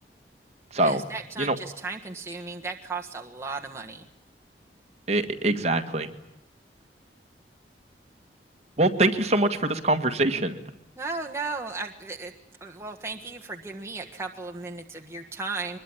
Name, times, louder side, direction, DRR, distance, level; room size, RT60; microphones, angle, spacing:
voice 1, 0.8-4.0 11.0-12.3 12.6-15.8, right 3 dB, 15° right, 1 dB, 1.4 m, -35 dB
voice 2, 5.1-6.1 8.8-10.6, right 2 dB, 40° right, 5 dB, 1.9 m, -23 dB
23.5 x 21.5 x 9.9 m, 0.89 s
head